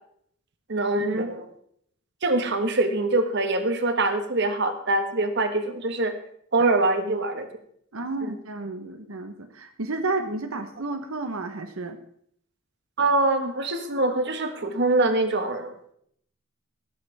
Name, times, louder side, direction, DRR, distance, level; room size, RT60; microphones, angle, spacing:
voice 1, 0.7-1.4 2.2-6.1 6.5-7.5 8.2-8.3 13.0-15.9, right 2 dB, 60° right, 8 dB, 1.5 m, -24 dB
voice 2, 7.9-12.0, right 2 dB, 90° right, 7 dB, 1.1 m, -31 dB
15.0 x 13.5 x 3.5 m, 0.66 s
head